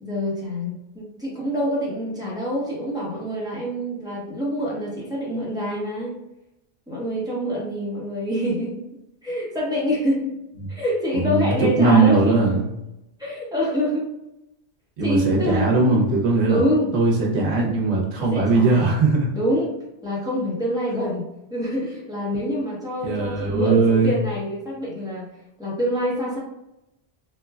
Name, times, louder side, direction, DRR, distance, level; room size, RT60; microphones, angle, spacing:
voice 1, 0.0-6.1 6.9-8.8 9.2-10.4 10.7-12.4 13.2-14.1 15.0-16.0 16.5-16.9 17.4-17.8 18.3-18.8 19.3-19.8 20.0-21.2 21.5-25.3 25.6-26.4, equal, 5° right, -7 dB, 0.7 m, -26 dB
voice 2, 11.1-12.7 15.0-16.6 16.9-19.4 23.0-24.1, right 3 dB, 75° right, -2 dB, 1.0 m, -19 dB
3.1 x 2.2 x 2.3 m, 0.89 s
omnidirectional pair, 1.1 m